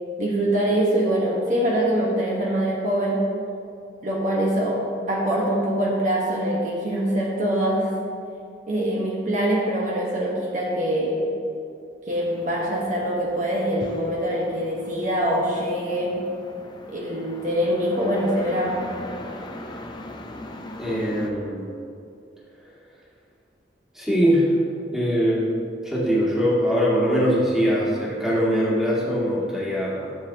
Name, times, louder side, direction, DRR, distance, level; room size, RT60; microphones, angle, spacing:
voice 1, 0.2-3.3 4.0-4.8 5.1-7.9 8.7-11.3 12.1-16.2 16.9-18.8, right 1 dB, 45° right, -4 dB, 1.3 m, -24 dB
sound 1, 12.1-21.3, left 1 dB, 25° left, 0.6 m, -40 dB
voice 2, 20.8-21.7 23.9-24.5 24.9-25.5 25.8-30.1, equal, 5° right, -7 dB, 1.9 m, -22 dB
13.5 x 7.2 x 2.9 m, 2.5 s
head